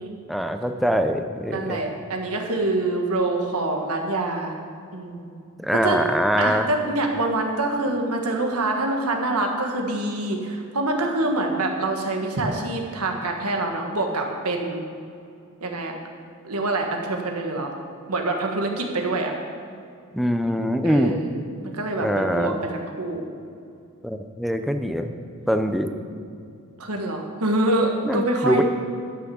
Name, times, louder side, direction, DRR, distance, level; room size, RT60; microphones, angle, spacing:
voice 1, 0.3-1.8 5.6-6.7 20.1-21.2 22.0-22.6 24.0-25.1 25.5-25.9 28.0-28.6, equal, ahead, 6 dB, 0.6 m, -23 dB
voice 2, 1.5-4.5 4.9-5.3 5.7-6.0 6.4-14.8 15.6-15.9 16.4-17.7 18.1-19.3 20.8-22.5 23.0-23.2 26.8-28.6, right 2 dB, 90° right, 2 dB, 1.5 m, -25 dB
11.5 x 6.2 x 7.0 m, 2.4 s
head